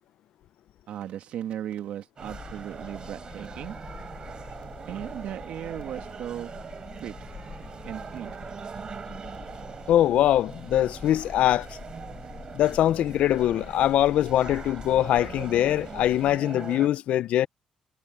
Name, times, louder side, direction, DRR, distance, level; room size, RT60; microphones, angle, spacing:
voice 1, 0.9-3.8 4.9-6.5 7.0-7.1 7.8-8.4, right 11 dB, 75° right, 2.3 m, -36 dB
sound 1, 2.2-16.4, left 6 dB, 45° left, 2.8 m, -45 dB
sound 2, 2.2-16.9, right 6 dB, 40° right, 4.0 m, -42 dB
voice 2, 9.9-11.7 12.6-17.5, left 12 dB, 75° left, 0.5 m, -22 dB
Animal, 10.5-11.6 12.4-13.5 14.3-15.3, right 3 dB, 20° right, 7.5 m, -53 dB
cardioid pair, 105°, 2 cm